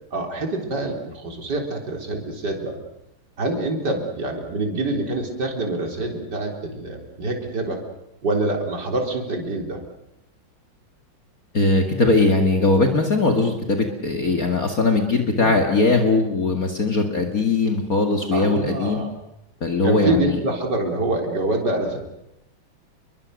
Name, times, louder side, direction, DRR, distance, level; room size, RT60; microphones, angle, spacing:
voice 1, 0.1-2.8 3.4-7.8 8.2-9.8 15.4-15.6 18.3-19.1 19.8-22.0, right 2 dB, 55° right, 2 dB, 4.4 m, -26 dB
voice 2, 11.5-19.0 19.6-20.4, left 3 dB, 45° left, 3 dB, 2.5 m, -20 dB
29.5 x 23.0 x 6.6 m, 0.86 s
omnidirectional pair, 2.2 m